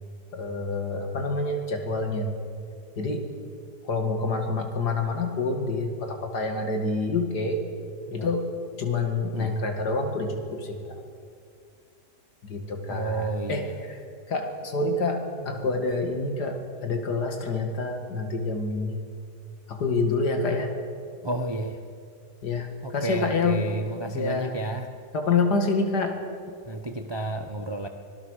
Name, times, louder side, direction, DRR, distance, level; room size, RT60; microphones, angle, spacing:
voice 1, 0.3-2.4 3.0-3.3 3.8-7.6 8.1-8.5 8.8-11.0 12.4-19.0 19.7-20.7 22.4-23.6 24.0-24.8 25.1-26.2, left 3 dB, 90° left, 4 dB, 2.7 m, -27 dB
voice 2, 12.9-13.7 21.2-21.8 23.0-24.9 26.7-27.9, right 2 dB, 20° right, 6 dB, 0.8 m, -31 dB
25.5 x 19.0 x 6.5 m, 2.2 s
omnidirectional pair, 1.7 m